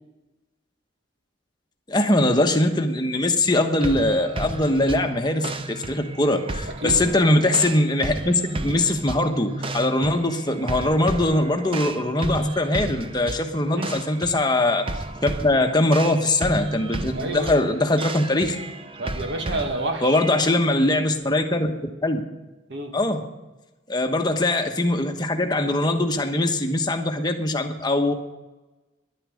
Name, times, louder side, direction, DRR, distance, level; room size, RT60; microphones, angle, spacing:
voice 1, 1.9-18.6 20.0-21.7 22.0-22.2 22.9-23.2 23.9-28.1, left 1 dB, 20° left, 5 dB, 1.1 m, -22 dB
sound 1, 3.8-20.5, right 2 dB, 25° right, 0.6 m, -32 dB
voice 2, 13.6-14.0 17.0-17.6 19.0-20.0 22.7-23.0, right 1 dB, 60° right, 4 dB, 2.0 m, -29 dB
11.0 x 9.8 x 8.5 m, 1.1 s
head